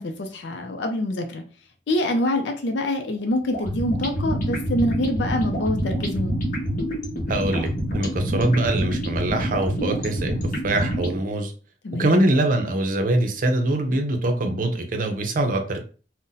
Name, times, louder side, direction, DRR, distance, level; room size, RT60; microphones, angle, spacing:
voice 1, 0.0-1.4 1.9-6.4 11.8-12.2, left 1 dB, 70° left, 0.5 m, -25 dB
sound 1, 3.5-11.2, equal, 50° left, 0.9 m, -26 dB
voice 2, 7.3-7.7 7.9-10.3 10.6-11.5 12.0-15.8, right 1 dB, 50° right, 0.6 m, -23 dB
2.6 x 2.1 x 3.8 m
head